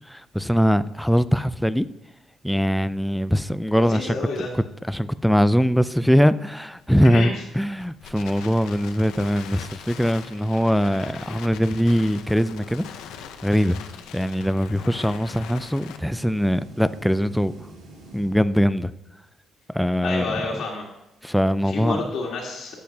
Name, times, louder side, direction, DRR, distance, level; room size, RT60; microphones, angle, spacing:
voice 1, 0.0-1.9 2.4-12.9 13.4-13.8 14.1-17.5 18.1-18.9 19.7-20.4 21.2-22.0, equal, ahead, 0.4 m, -22 dB
voice 2, 3.8-4.5 7.0-7.3 20.0-20.8 21.7-22.8, left 3 dB, 70° left, 1.7 m, -29 dB
Crackle, 6.7-16.0, left 8 dB, 85° left, 0.7 m, -42 dB
sound 1, 15.9-19.1, right 1 dB, 80° right, 2.5 m, -46 dB
14.5 x 6.5 x 2.8 m
cardioid pair, 85°, 0 cm